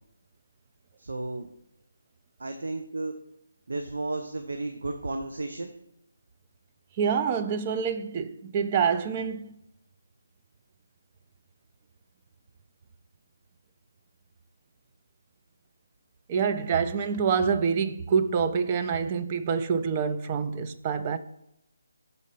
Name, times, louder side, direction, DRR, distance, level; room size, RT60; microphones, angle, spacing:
voice 1, 1.0-1.5 2.4-3.2 3.7-5.7, right 2 dB, 75° right, 0.7 m, -33 dB
voice 2, 7.0-9.5 16.3-21.2, right 6 dB, 25° right, 0.4 m, -26 dB
6.5 x 4.1 x 5.5 m
figure-of-eight pair, 160°, 0 cm